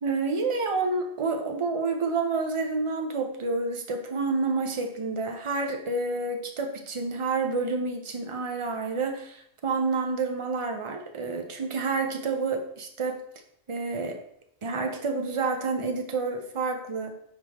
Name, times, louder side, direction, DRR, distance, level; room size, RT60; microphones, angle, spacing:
voice 1, 0.0-13.2 13.7-14.2 14.6-17.1, right 3 dB, 50° right, 5 dB, 0.3 m, -29 dB
5.7 x 4.7 x 3.5 m, 0.71 s
omnidirectional pair, 1.4 m